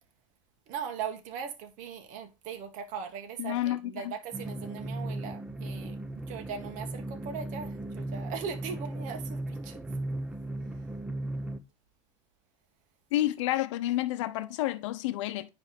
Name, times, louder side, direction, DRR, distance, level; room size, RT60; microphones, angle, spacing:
voice 1, 0.7-9.8, right 7 dB, 55° right, 1.6 m, -39 dB
voice 2, 3.4-4.1 13.1-15.5, left 14 dB, 75° left, 0.8 m, -30 dB
sound 1, 4.3-11.6, right 1 dB, 5° right, 0.8 m, -37 dB
9.8 x 3.4 x 4.8 m
hypercardioid pair, 85°, 16 cm